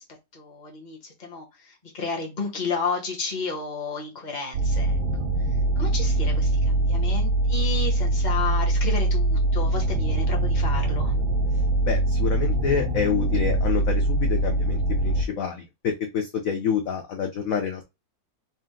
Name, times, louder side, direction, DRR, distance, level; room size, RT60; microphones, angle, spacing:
voice 1, 0.3-5.0 5.8-11.1, left 4 dB, 25° left, 1.2 m, -32 dB
sound 1, 4.5-15.2, right 1 dB, 60° right, 0.8 m, -23 dB
voice 2, 11.8-17.8, left 7 dB, 60° left, 1.0 m, -28 dB
4.3 x 2.4 x 3.7 m
omnidirectional pair, 2.0 m